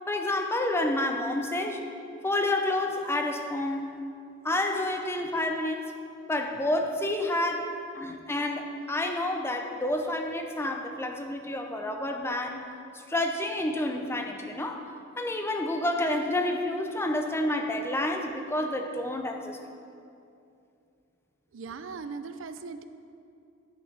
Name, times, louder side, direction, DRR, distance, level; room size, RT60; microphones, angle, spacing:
voice 1, 0.1-1.9 2.2-4.0 4.4-6.0 6.3-12.7 12.9-19.6, left 1 dB, 15° left, 4 dB, 0.6 m, -29 dB
voice 2, 21.5-22.8, right 4 dB, 70° right, 10 dB, 0.5 m, -39 dB
10.5 x 9.0 x 3.9 m, 2.5 s
head